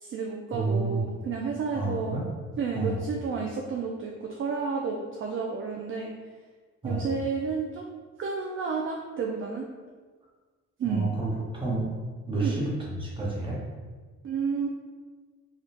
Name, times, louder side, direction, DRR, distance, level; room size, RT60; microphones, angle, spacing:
voice 1, 0.0-2.1 2.6-6.1 6.8-7.9 8.2-9.7 10.8-11.1 12.4-12.6 14.2-14.7, right 5 dB, 45° right, 0 dB, 0.4 m, -31 dB
voice 2, 0.5-1.0 1.7-2.3 2.7-3.0 6.8-7.1 10.8-11.9 12.3-13.6, right 3 dB, 15° right, -5 dB, 1.1 m, -29 dB
3.5 x 2.3 x 2.8 m, 1.4 s
cardioid pair, 90°, 30 cm